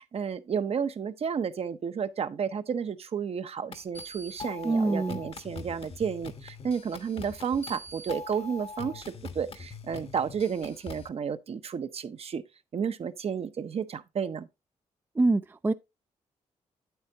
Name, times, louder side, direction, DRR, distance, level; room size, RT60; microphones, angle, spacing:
voice 1, 0.0-9.1 9.3-12.4 12.7-14.5, right 7 dB, 55° right, 0.7 m, -32 dB
sound 1, 3.7-11.1, left 4 dB, 50° left, 1.1 m, -42 dB
voice 2, 4.6-5.2 15.2-15.7, right 2 dB, 15° right, 0.4 m, -25 dB
8.8 x 8.0 x 2.7 m
cardioid pair, 75°, 13 cm